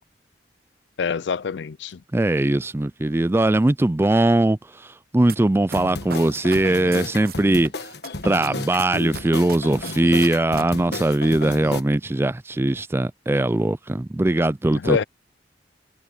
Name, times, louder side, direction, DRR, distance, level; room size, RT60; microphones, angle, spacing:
voice 1, 1.0-2.0 14.7-15.0, left 6 dB, 80° left, 0.5 m, -25 dB
voice 2, 2.1-7.9 8.2-15.0, right 1 dB, 15° right, 0.4 m, -20 dB
sound 1, 5.3-5.4 5.7-7.7 8.0-11.0 11.2-11.3, right 6 dB, 55° right, 1.0 m, -35 dB
sound 2, 5.8-11.8, left 2 dB, 65° left, 1.4 m, -33 dB
head